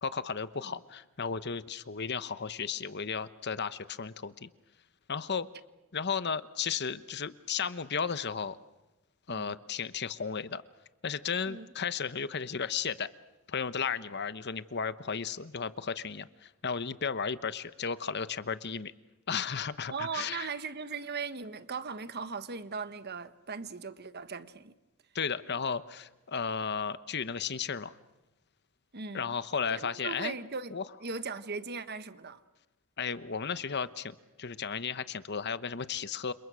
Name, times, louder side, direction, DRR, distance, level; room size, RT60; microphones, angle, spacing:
voice 1, 0.0-4.5 5.1-5.5 5.9-8.6 9.3-10.6 11.0-13.1 13.5-18.9 19.3-20.5 25.1-27.9 29.1-30.3 30.7-30.8 33.0-36.3, left 6 dB, 55° left, 1.0 m, -34 dB
voice 2, 19.9-24.7 28.9-29.3 29.7-32.4, right 5 dB, 50° right, 1.2 m, -38 dB
30.0 x 27.5 x 6.3 m
head